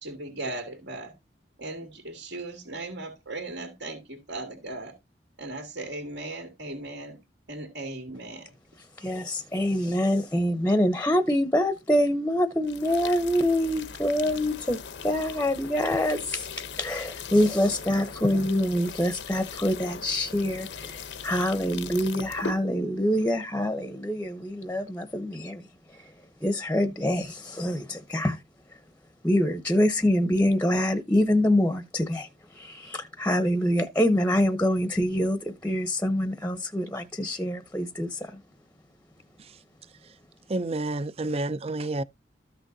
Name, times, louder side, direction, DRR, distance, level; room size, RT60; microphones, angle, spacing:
voice 1, 0.0-1.1 1.6-5.0 5.4-7.2 7.5-8.5, right 2 dB, 75° right, 2.4 m, -37 dB
voice 2, 9.0-25.6 25.9-26.1 26.4-28.4 29.2-38.4, left 1 dB, 10° left, 0.7 m, -25 dB
sound 1, 12.6-22.6, left 5 dB, 80° left, 0.7 m, -40 dB
voice 3, 40.5-42.0, right 2 dB, 35° right, 0.4 m, -29 dB
13.5 x 6.1 x 2.7 m
head